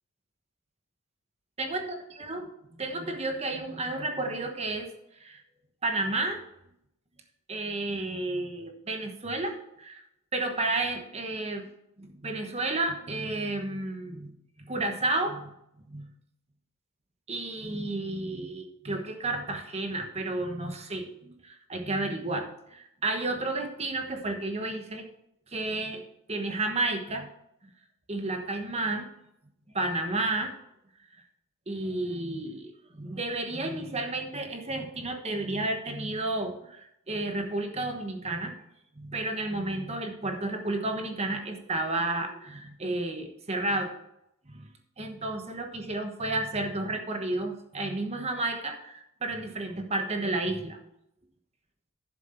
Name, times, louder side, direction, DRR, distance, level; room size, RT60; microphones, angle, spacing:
voice 1, 2.8-4.9 5.2-5.4 5.8-6.4 7.5-10.0 10.3-11.7 12.0-15.5 15.9-16.1 17.3-25.1 25.5-26.0 26.3-27.3 28.1-29.1 29.7-30.5 31.7-38.5 39.0-43.9 44.5-44.7 45.0-50.8, right 2 dB, 30° right, 4 dB, 1.2 m, -32 dB
10.5 x 7.7 x 4.3 m, 0.80 s
head